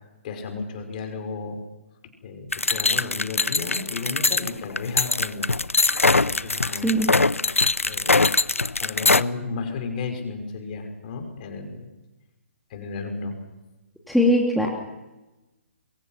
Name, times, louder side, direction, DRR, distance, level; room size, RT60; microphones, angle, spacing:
voice 1, 0.2-1.6 2.2-5.5 6.0-6.9 7.9-8.2 8.8-11.9 12.7-13.4, left 4 dB, 40° left, 5 dB, 5.8 m, -33 dB
sound 1, 2.5-9.2, left 3 dB, 85° left, 0.7 m, -22 dB
voice 2, 14.1-14.7, equal, ahead, -2 dB, 2.9 m, -20 dB
27.5 x 23.5 x 5.9 m, 1.0 s
figure-of-eight pair, 130°, 7 cm